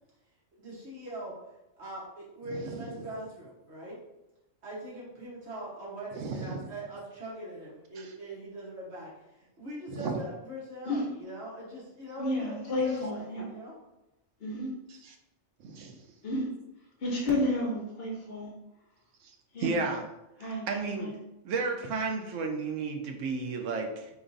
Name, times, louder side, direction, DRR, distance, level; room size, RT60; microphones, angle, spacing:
voice 1, 0.6-1.3 1.8-4.0 4.6-13.7, right 1 dB, 60° right, -5 dB, 1.4 m, -42 dB
voice 2, 2.5-2.9 6.2-6.7 9.9-10.2 15.6-16.0 19.2-19.3 19.6-20.0 20.7-21.1 21.4-24.1, right 4 dB, 75° right, 3 dB, 1.0 m, -32 dB
voice 3, 12.2-13.4 14.4-14.7 16.2-16.5 17.0-18.5 19.5-19.8 20.4-21.1, left 1 dB, 55° left, -3 dB, 1.0 m, -31 dB
4.5 x 3.1 x 2.6 m, 0.92 s
omnidirectional pair, 1.3 m